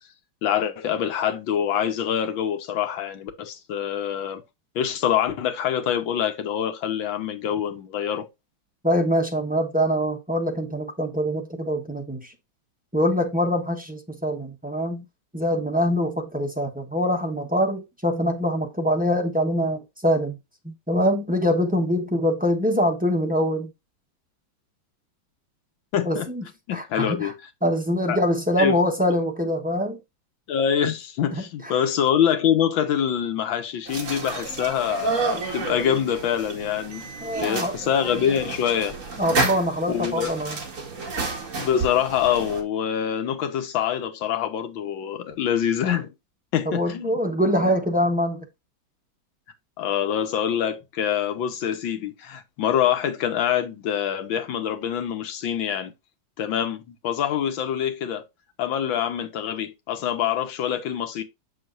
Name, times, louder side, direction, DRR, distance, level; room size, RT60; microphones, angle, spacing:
voice 1, 0.4-4.4 4.8-8.3 25.9-26.3 26.7-27.3 28.1-28.2 28.6-28.8 30.5-37.1 37.4-38.9 39.9-40.4 41.6-46.1 46.5-47.2 49.8-55.9 56.4-58.2 58.6-61.2, left 9 dB, 85° left, 1.7 m, -25 dB
voice 2, 8.8-12.3 12.9-15.0 15.3-20.4 20.6-23.7 26.0-26.4 26.7-27.3 27.6-30.0 31.3-31.4 37.2-37.7 39.2-40.6 46.6-48.5, equal, 10° right, 0.5 m, -24 dB
sound 1, 33.9-42.6, right 4 dB, 40° right, 2.0 m, -30 dB
7.0 x 6.4 x 2.5 m
omnidirectional pair, 2.1 m